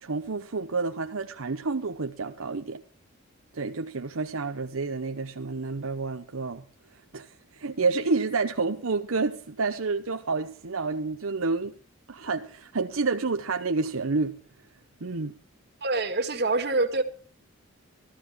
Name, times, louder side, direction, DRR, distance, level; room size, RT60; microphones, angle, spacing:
voice 1, 0.0-2.8 3.5-6.6 7.1-11.7 12.1-14.4 15.0-15.3, right 4 dB, 80° right, 0.8 m, -29 dB
voice 2, 15.8-17.0, right 2 dB, 50° right, 2.1 m, -25 dB
14.5 x 14.0 x 4.6 m
head